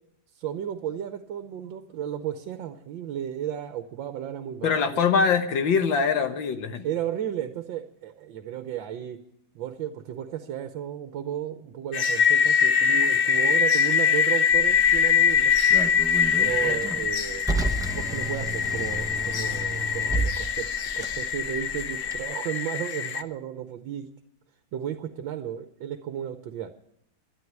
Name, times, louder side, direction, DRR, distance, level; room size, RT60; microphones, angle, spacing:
voice 1, 0.4-5.0 6.8-9.2 9.5-15.5 16.4-24.1 24.7-26.7, right 10 dB, 80° right, 8 dB, 1.6 m, -34 dB
voice 2, 4.6-6.8, left 6 dB, 80° left, 8 dB, 1.9 m, -23 dB
sound 1, 11.9-23.2, left 7 dB, 60° left, 0.8 m, -23 dB
Car, 14.5-22.2, right 2 dB, 5° right, 0.6 m, -32 dB
12.5 x 10.5 x 9.4 m, 0.77 s
omnidirectional pair, 2.0 m